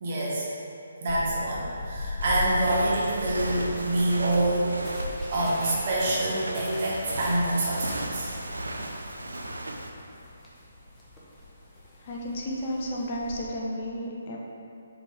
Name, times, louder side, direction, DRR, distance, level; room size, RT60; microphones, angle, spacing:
voice 1, 0.0-0.5 1.0-4.7 5.3-8.3, right 1 dB, 45° right, -6 dB, 1.4 m, -26 dB
sound 1, 1.1-13.5, left 2 dB, 10° left, 1.0 m, -40 dB
Walk footsteps, 2.2-9.9, right 1 dB, 75° right, 0.6 m, -35 dB
voice 2, 12.0-14.4, equal, 35° left, -2 dB, 0.9 m, -32 dB
7.3 x 4.0 x 3.6 m, 2.6 s
figure-of-eight pair, 140°, 0 cm